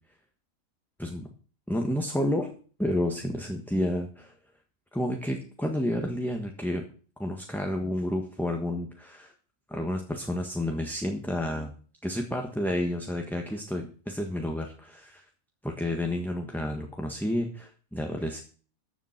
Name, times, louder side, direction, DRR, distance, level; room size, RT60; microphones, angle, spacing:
voice 1, 1.7-2.5 2.8-4.3 4.9-6.8 7.2-9.3 9.7-11.7 12.0-15.2 15.6-18.4, left 1 dB, ahead, 2 dB, 1.3 m, -30 dB
14.0 x 7.2 x 5.9 m, 0.41 s
omnidirectional pair, 1.5 m